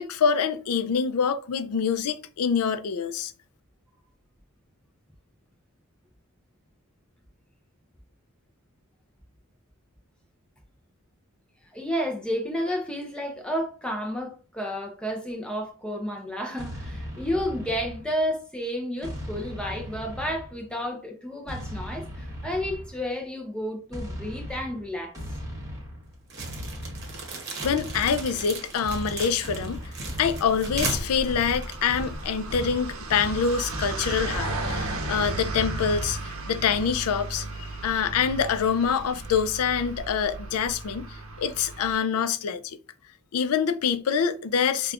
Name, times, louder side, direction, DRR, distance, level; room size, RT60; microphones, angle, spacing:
voice 1, 0.0-3.3 27.6-29.8 30.2-41.1 41.4-42.8 43.3-44.9, left 6 dB, 90° left, 0.4 m, -25 dB
voice 2, 11.7-25.1, equal, 5° left, 0.5 m, -31 dB
sound 1, 16.6-18.3 19.0-20.7 21.5-23.1 23.9-36.2, equal, 15° right, 0.9 m, -38 dB
sound 2, 26.3-32.4, right 3 dB, 50° right, 0.9 m, -37 dB
sound 3, 28.7-42.0, right 2 dB, 75° right, 0.7 m, -36 dB
5.0 x 2.3 x 2.4 m
head